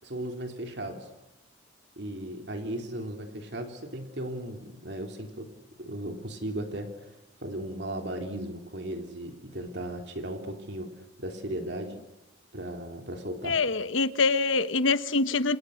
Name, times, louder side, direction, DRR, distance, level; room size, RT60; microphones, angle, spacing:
voice 1, 0.0-1.1 2.0-5.5 5.8-7.1 7.4-12.0 12.5-13.6, right 1 dB, 60° right, 3.4 m, -36 dB
voice 2, 13.4-15.6, left 3 dB, 90° left, 1.3 m, -25 dB
29.5 x 26.5 x 6.6 m
head